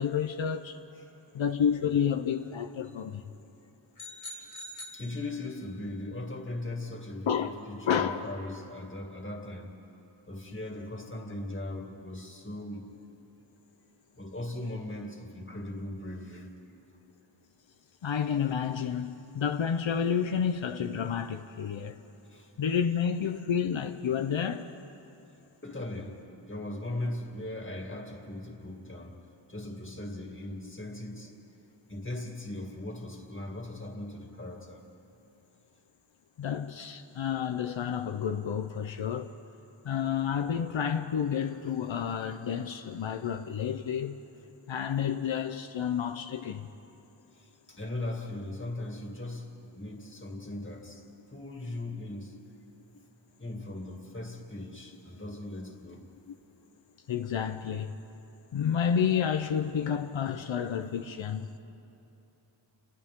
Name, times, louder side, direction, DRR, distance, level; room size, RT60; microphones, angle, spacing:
voice 1, 0.0-0.8 1.3-3.2 7.3-7.5 7.9-8.2 18.0-22.0 22.6-24.7 36.4-39.3 39.8-44.2 44.7-46.7 57.1-58.0 58.5-61.6, left 8 dB, 80° left, 0.7 m, -30 dB
voice 2, 1.0-1.3 4.3-4.5 4.9-9.8 10.3-12.9 14.1-16.5 22.3-22.5 25.6-31.4 31.9-34.8 47.3-52.5 53.4-56.1, left 1 dB, 25° left, 2.4 m, -39 dB
sound 1, 4.0-5.8, left 1 dB, 40° left, 2.7 m, -45 dB
30.0 x 29.0 x 3.7 m
wide cardioid pair, 80°, 45 cm